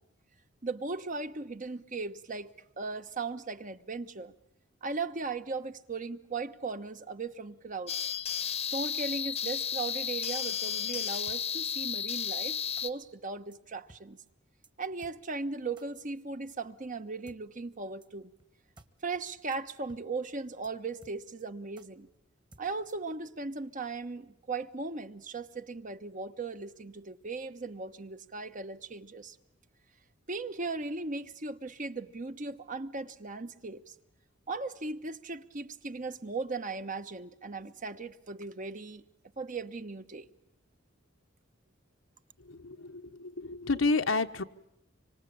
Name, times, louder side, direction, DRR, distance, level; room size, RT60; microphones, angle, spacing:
voice 1, 0.6-4.3 4.8-7.9 8.7-14.2 14.8-18.3 19.0-22.1 22.6-29.4 30.3-33.9 34.5-39.0 39.4-40.3, right 3 dB, 40° right, 1.1 m, -38 dB
sound 1, 7.9-12.9, left 8 dB, 35° left, 1.0 m, -33 dB
sound 2, 11.3-11.4 12.0-12.1 12.8-12.9 13.5-13.6 13.9-14.0 14.3-14.4 14.6-14.7 15.0-15.1 15.8-15.9 16.5-16.6 17.3-17.4 18.0-18.1 18.4-18.5 18.8-18.9 19.1-19.2 19.5-19.6 19.9-20.0 20.3-20.4 20.6-20.7 21.0-21.4 21.8-21.9 22.5-23.1, right 1 dB, 25° right, 1.5 m, -56 dB
voice 2, 42.4-44.4, left 3 dB, 80° left, 1.1 m, -30 dB
25.5 x 25.5 x 8.8 m
head